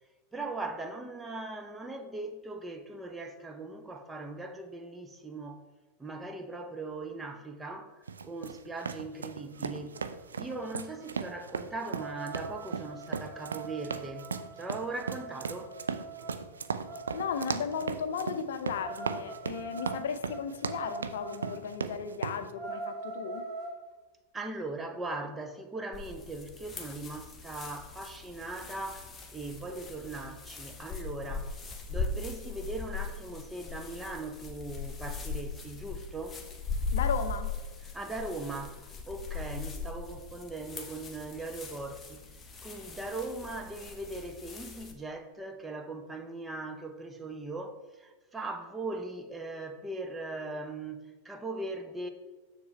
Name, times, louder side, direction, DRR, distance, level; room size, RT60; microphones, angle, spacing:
voice 1, 0.3-5.6 6.0-10.0 10.4-14.3 14.6-15.9 24.3-31.6 31.9-36.4 37.8-42.3 42.6-52.1, right 2 dB, 10° right, 0.7 m, -39 dB
sound 1, 8.1-22.4, right 5 dB, 70° right, 0.4 m, -37 dB
sound 2, 9.6-9.7 9.9-10.2 10.6-17.5 18.8-21.6 22.0-22.1 22.4-23.8, right 3 dB, 35° right, 1.7 m, -43 dB
voice 2, 17.1-23.5 36.9-37.5, left 6 dB, 60° left, 0.6 m, -35 dB
sound 3, 25.9-44.9, left 4 dB, 15° left, 1.0 m, -39 dB
6.9 x 6.7 x 3.2 m
figure-of-eight pair, 90°, 0 cm